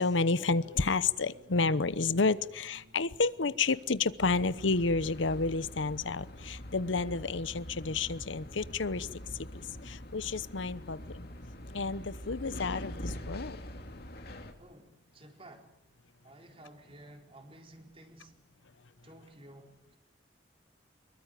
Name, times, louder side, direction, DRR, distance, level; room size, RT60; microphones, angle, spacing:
voice 1, 0.0-9.1 9.8-11.3 11.7-13.6, left 4 dB, 80° left, 16 dB, 0.9 m, -30 dB
sound 1, 0.6-7.3, left 1 dB, 75° right, 4.6 m, -60 dB
sound 2, 4.2-14.5, equal, 55° left, 2.7 m, -44 dB
voice 2, 14.6-15.7 16.2-18.4 19.0-20.0, right 1 dB, 30° right, 4 dB, 4.0 m, -53 dB
25.0 x 22.0 x 9.3 m, 0.84 s
head